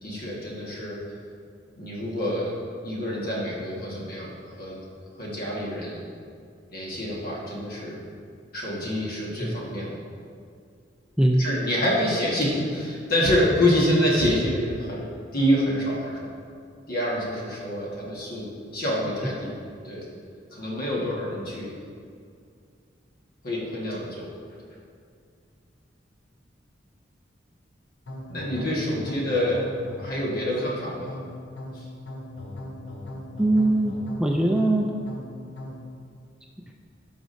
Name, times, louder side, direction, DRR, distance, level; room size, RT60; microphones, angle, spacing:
voice 1, 0.0-1.0 1.8-2.5 2.8-4.7 5.1-6.0 6.7-8.0 8.5-9.9 11.4-15.0 15.3-16.3 16.9-19.6 19.8-20.0 20.5-21.7 23.4-24.3 28.3-29.6 30.0-31.1 31.7-31.9, equal, 55° left, -4 dB, 1.5 m, -26 dB
voice 2, 11.2-11.5 19.2-19.3 33.4-34.9, right 1 dB, 5° right, 0 dB, 0.3 m, -22 dB
sound 1, 28.1-35.9, left 1 dB, 70° left, 0.8 m, -38 dB
10.5 x 4.9 x 2.6 m, 2.3 s
head